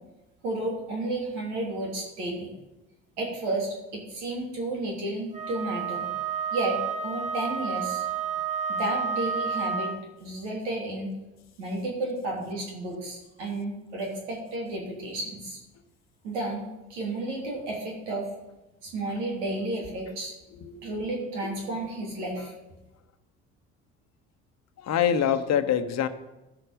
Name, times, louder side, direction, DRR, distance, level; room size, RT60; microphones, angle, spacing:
voice 1, 0.4-2.5 3.2-6.1 6.5-8.0 8.7-9.9 10.2-11.1 11.6-15.6 16.2-18.3 18.8-20.3 20.8-22.5, right 2 dB, 85° right, -1 dB, 3.1 m, -32 dB
Wind instrument woodwind instrument, 5.3-10.1, right 6 dB, 20° right, 1.8 m, -30 dB
voice 2, 20.5-20.9 22.4-22.5 24.8-26.1, left 9 dB, 50° left, 10 dB, 1.0 m, -25 dB
14.0 x 6.6 x 5.2 m, 1.0 s
hypercardioid pair, 60°, 34 cm